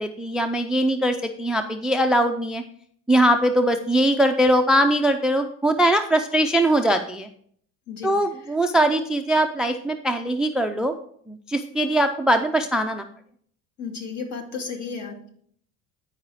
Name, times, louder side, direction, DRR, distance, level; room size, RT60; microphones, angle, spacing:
voice 1, 0.0-2.6 3.1-7.3 8.0-10.9 11.3-13.0, right 1 dB, ahead, 8 dB, 0.3 m, -21 dB
voice 2, 13.8-15.3, left 5 dB, 50° left, 3 dB, 2.2 m, -33 dB
9.9 x 4.8 x 4.8 m, 0.62 s
cardioid pair, 115°, 37 cm